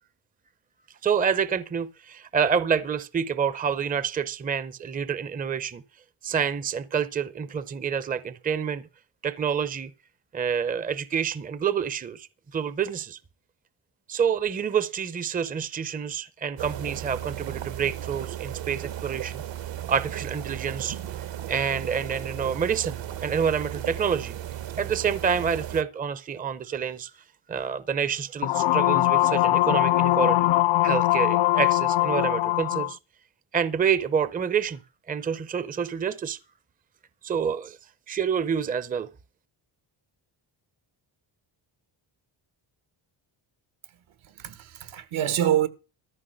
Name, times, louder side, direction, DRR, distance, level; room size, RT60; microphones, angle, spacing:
voice 1, 1.0-5.8 6.2-8.8 9.2-9.9 10.3-12.3 12.5-13.2 14.1-19.4 19.9-24.4 24.8-27.1 27.5-30.5 30.8-33.0 33.5-34.8 35.1-36.4 37.2-37.8 38.1-39.1, right 7 dB, 20° right, 0.5 m, -28 dB
sound 1, 16.6-25.8, right 12 dB, 65° right, 1.1 m, -35 dB
sound 2, 28.4-32.9, left 16 dB, 65° left, 0.5 m, -21 dB
voice 2, 44.2-45.7, right 11 dB, 80° right, 1.5 m, -26 dB
14.0 x 5.4 x 7.7 m
cardioid pair, 155°, 48 cm